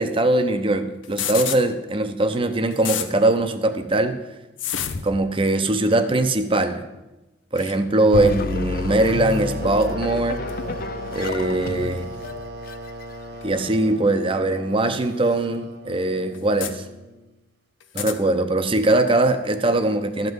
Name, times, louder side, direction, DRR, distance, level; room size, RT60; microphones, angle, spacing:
voice 1, 0.0-4.2 5.0-6.8 7.5-10.4 11.1-12.1 13.4-16.8 17.9-20.3, right 2 dB, 30° right, 8 dB, 0.8 m, -21 dB
sound 1, 1.0-1.6 2.3-2.4 2.7-3.1 4.6-5.1 5.9-6.1 7.6-7.8 9.0-9.2 10.5-10.6 11.9-12.0 13.4-13.5 14.9-15.0 15.3-15.4 16.3-16.7 17.8-18.2, left 9 dB, 90° left, 0.8 m, -29 dB
sound 2, 8.1-13.6, left 4 dB, 50° left, 0.5 m, -30 dB
sound 3, 8.9-17.3, right 1 dB, 60° right, 0.9 m, -36 dB
13.0 x 5.3 x 8.0 m, 1.0 s
head